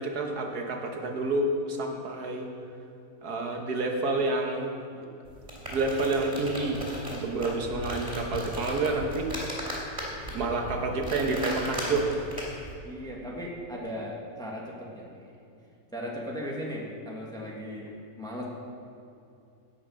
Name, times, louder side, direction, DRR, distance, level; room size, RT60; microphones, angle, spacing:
voice 1, 0.0-2.5 3.2-4.7 5.7-6.8 7.1-9.3 10.3-12.2, right 2 dB, 80° right, 2 dB, 1.9 m, -29 dB
sound 1, 5.3-12.7, right 1 dB, 25° right, 3.4 m, -36 dB
voice 2, 12.8-15.3 15.9-17.9 18.2-18.5, equal, 5° left, -3 dB, 1.6 m, -37 dB
17.5 x 6.2 x 6.4 m, 2.5 s
omnidirectional pair, 1.6 m